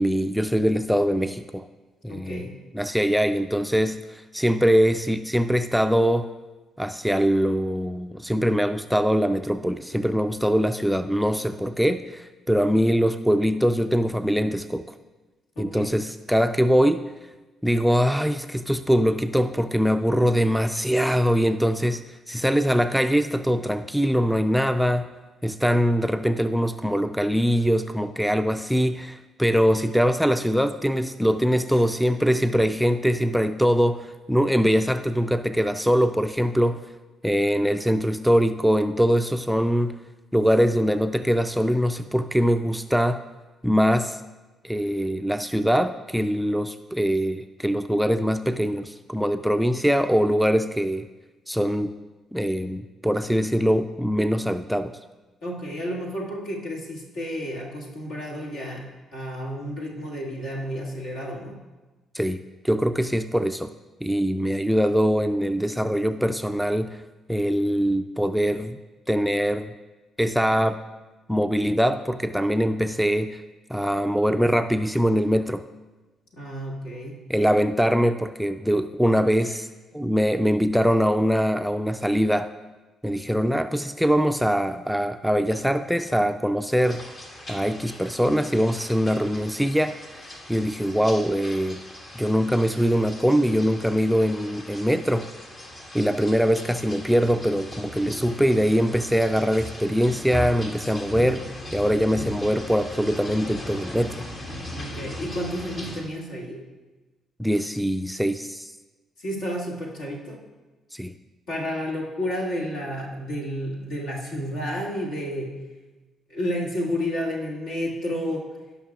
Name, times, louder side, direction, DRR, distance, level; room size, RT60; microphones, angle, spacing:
voice 1, 0.0-1.7 2.0-6.3 6.8-14.8 15.6-17.0 17.6-22.0 22.3-25.1 25.4-36.8 37.2-39.9 40.3-43.2 43.6-44.2 44.6-51.1 51.5-51.9 52.3-54.9 62.1-62.4 62.6-63.7 64.0-67.0 67.3-68.8 69.1-69.7 70.2-70.8 71.3-73.4 73.7-75.6 77.3-79.7 79.9-82.5 83.0-87.0 87.5-91.8 92.2-95.3 95.9-101.4 101.7-104.3 107.4-108.7 110.9-111.1, equal, ahead, 9 dB, 0.4 m, -22 dB
voice 2, 2.1-2.6 15.6-15.9 55.4-61.5 76.4-77.1 104.7-106.6 109.2-110.4 111.5-115.6 116.3-118.5, equal, 70° left, -3 dB, 1.9 m, -31 dB
sound 1, 86.8-106.0, left 1 dB, 45° left, 1.7 m, -38 dB
17.0 x 5.8 x 2.4 m, 1.2 s
figure-of-eight pair, 45°, 0 cm